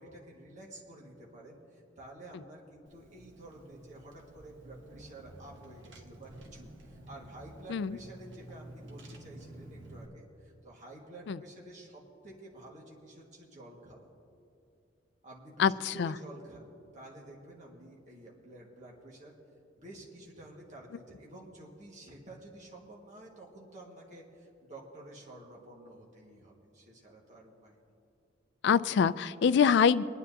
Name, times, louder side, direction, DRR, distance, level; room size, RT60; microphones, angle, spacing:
voice 1, 0.0-14.1 15.2-19.3 19.8-27.8, right 1 dB, 40° right, -3 dB, 1.8 m, -50 dB
Car / Engine, 2.9-10.1, right 1 dB, 65° right, 1.1 m, -51 dB
voice 2, 15.6-16.1 28.6-30.0, left 6 dB, 60° left, 16 dB, 0.3 m, -25 dB
24.0 x 9.8 x 2.8 m, 2.6 s
head